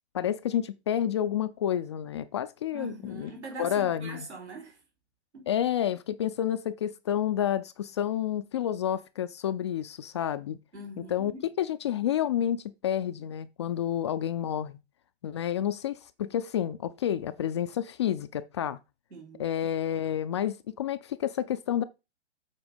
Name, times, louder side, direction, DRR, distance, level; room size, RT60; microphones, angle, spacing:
voice 1, 0.1-3.3 3.6-4.3 5.5-10.6 11.1-11.3 11.6-14.8 15.2-18.8 19.4-21.8, left 10 dB, 25° left, 0.4 m, -29 dB
voice 2, 2.7-4.8 5.3-5.5 10.7-11.5 19.1-19.4, right 2 dB, 80° right, 4.6 m, -42 dB
8.1 x 4.8 x 5.2 m
figure-of-eight pair, 125°, 33 cm